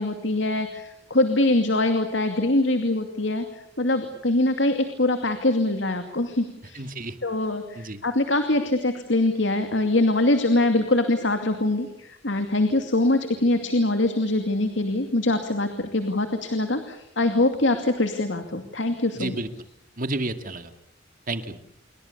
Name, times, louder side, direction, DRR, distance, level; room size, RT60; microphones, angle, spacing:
voice 1, 0.0-6.8 7.2-19.4, left 2 dB, 70° left, 7 dB, 2.5 m, -23 dB
voice 2, 6.7-7.2 7.8-8.0 19.1-19.5 20.0-20.7 21.3-21.6, right 2 dB, 45° right, 9 dB, 2.2 m, -30 dB
28.0 x 23.5 x 6.9 m, 0.77 s
head